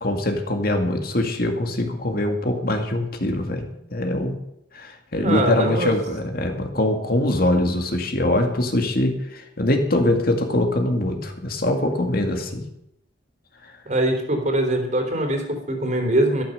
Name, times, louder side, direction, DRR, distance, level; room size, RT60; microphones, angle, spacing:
voice 1, 0.0-4.4 4.7-12.6 13.6-13.7, left 1 dB, 50° left, 4 dB, 2.2 m, -23 dB
voice 2, 5.2-5.9 13.9-16.4, right 1 dB, 40° right, 4 dB, 3.6 m, -22 dB
13.0 x 13.0 x 6.7 m, 0.78 s
head